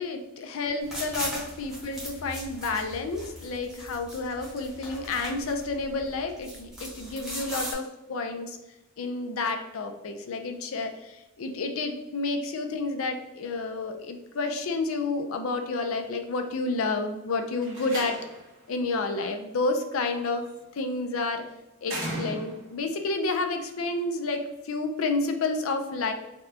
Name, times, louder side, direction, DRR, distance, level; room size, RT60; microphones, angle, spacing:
voice 1, 0.0-8.6 9.0-11.0 11.4-18.2 18.7-20.5 20.8-21.4 21.8-26.1, left 3 dB, 75° left, 6 dB, 0.5 m, -30 dB
sound 1, 0.8-7.7, equal, ahead, 0.9 m, -39 dB
Slam, 17.5-18.6 20.1-20.5 21.8-22.8, right 1 dB, 65° right, 1.1 m, -36 dB
4.1 x 2.2 x 2.7 m, 0.99 s
head